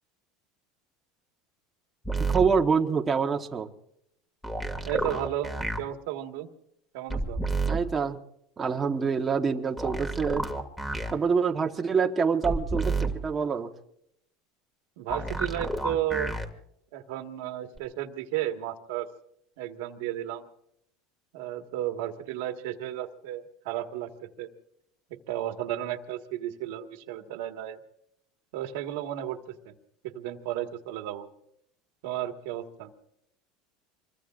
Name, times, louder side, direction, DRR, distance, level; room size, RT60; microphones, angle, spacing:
sound 1, 2.1-2.5 4.4-5.8 7.1-7.8 9.8-11.1 12.4-13.1 15.1-16.5 17.8-17.9, right 2 dB, 5° left, 2.2 m, -29 dB
voice 1, 2.3-3.7 7.7-8.2 8.6-10.4 11.1-13.7, right 5 dB, 20° right, 2 dB, 1.1 m, -26 dB
voice 2, 4.9-5.5 5.8-6.5 6.9-7.4 15.0-16.4 16.9-19.1 19.6-20.4 21.3-24.1 24.4-24.5 25.3-27.8 28.5-29.4 29.6-29.7 30.0-31.3 32.0-32.9, right 12 dB, 75° right, 7 dB, 1.6 m, -33 dB
26.0 x 22.5 x 2.5 m, 0.74 s
supercardioid pair, 145°, 0 cm